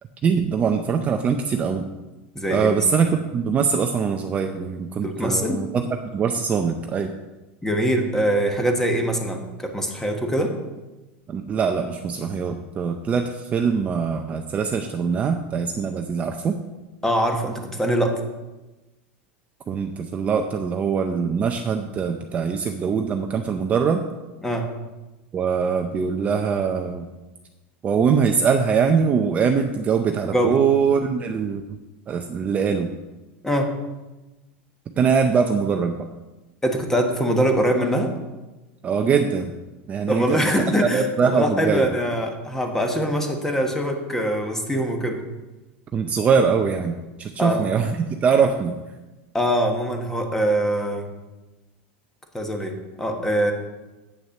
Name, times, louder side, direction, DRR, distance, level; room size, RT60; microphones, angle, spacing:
voice 1, 0.2-1.9 2.5-5.8 6.1-7.1 11.3-16.6 19.7-24.0 25.3-27.1 27.8-31.6 32.1-32.9 35.0-36.1 38.8-39.5 39.9-40.5 40.9-41.9 45.9-47.9 48.2-48.8, right 6 dB, 25° right, 5 dB, 0.6 m, -22 dB
voice 2, 2.3-2.8 5.0-5.6 7.6-10.5 17.0-18.1 24.4-24.6 30.3-30.6 33.4-33.7 36.6-38.1 40.1-45.2 47.4-47.6 49.3-51.1 52.3-53.5, equal, 5° left, 4 dB, 1.3 m, -23 dB
8.7 x 6.4 x 6.5 m, 1.1 s
supercardioid pair, 145°, 6 cm